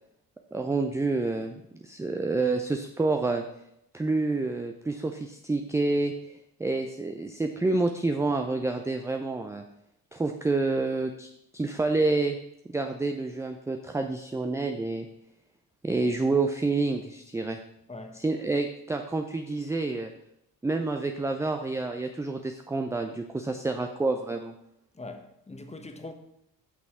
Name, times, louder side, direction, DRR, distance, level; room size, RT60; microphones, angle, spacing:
voice 1, 0.5-3.4 3.9-6.1 6.6-9.6 10.1-12.4 12.7-15.1 15.8-17.6 18.1-20.1 20.6-24.5, right 3 dB, 5° right, 0.4 m, -28 dB
voice 2, 17.9-18.2 25.0-26.1, left 2 dB, 15° left, 1.1 m, -42 dB
8.5 x 6.0 x 3.6 m
figure-of-eight pair, 50°, 49 cm